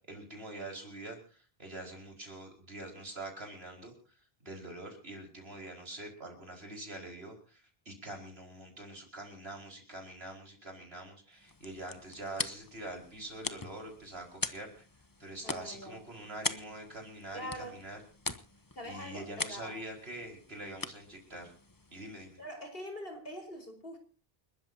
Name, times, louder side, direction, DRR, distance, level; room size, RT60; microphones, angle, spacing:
voice 1, 0.1-14.9 15.2-18.0 18.8-21.5 21.9-22.4, right 1 dB, 75° right, 3 dB, 5.1 m, -45 dB
sound 1, 11.3-22.5, left 3 dB, 20° left, 0.9 m, -42 dB
voice 2, 15.4-16.0 17.3-17.8 18.7-19.8 22.4-24.0, equal, 65° left, 4 dB, 4.7 m, -43 dB
29.5 x 13.0 x 2.8 m, 0.36 s
omnidirectional pair, 1.0 m